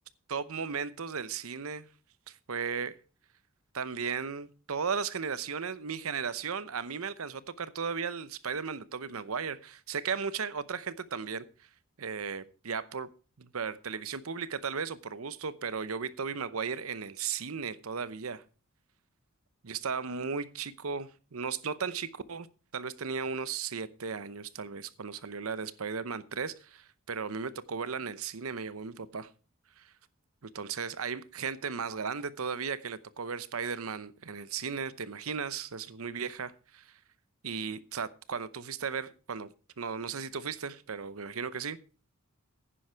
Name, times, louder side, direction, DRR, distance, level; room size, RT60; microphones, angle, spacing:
voice 1, 0.3-1.9 2.3-2.9 3.8-11.4 12.0-13.1 13.4-18.4 19.6-22.5 22.7-29.3 29.8-29.9 30.4-36.9 37.4-39.5 39.8-41.8, right 6 dB, 70° right, 0.8 m, -36 dB
10.0 x 10.0 x 4.6 m
head